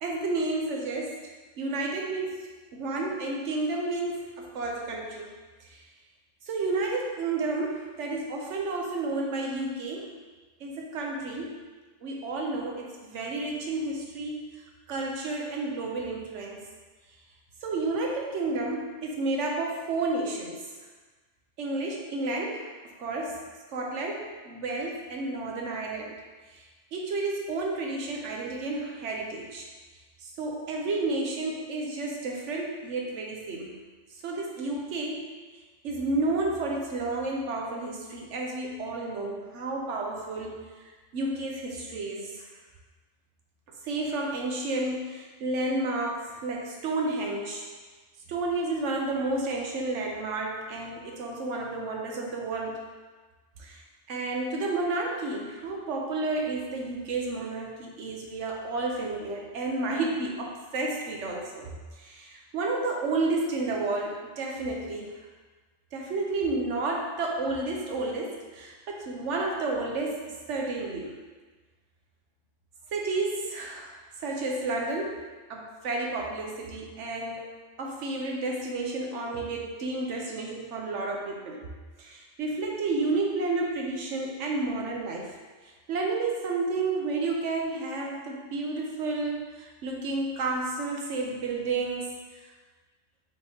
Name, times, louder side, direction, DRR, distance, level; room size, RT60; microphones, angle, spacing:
voice 1, 0.0-5.3 5.6-5.8 6.5-10.1 10.6-11.6 12.0-14.4 14.9-16.6 17.6-20.7 21.6-22.7 23.0-23.4 23.7-26.1 26.5-26.6 26.9-29.7 30.2-33.8 34.1-35.3 35.8-40.6 41.1-42.5 43.8-47.7 48.3-52.8 53.6-53.8 54.1-65.1 65.9-71.2 72.9-73.9 74.2-77.4 77.8-81.7 82.0-85.4 85.9-92.1, right 2 dB, 80° right, -1 dB, 1.1 m, -31 dB
5.3 x 3.5 x 2.8 m, 1.3 s
omnidirectional pair, 1.2 m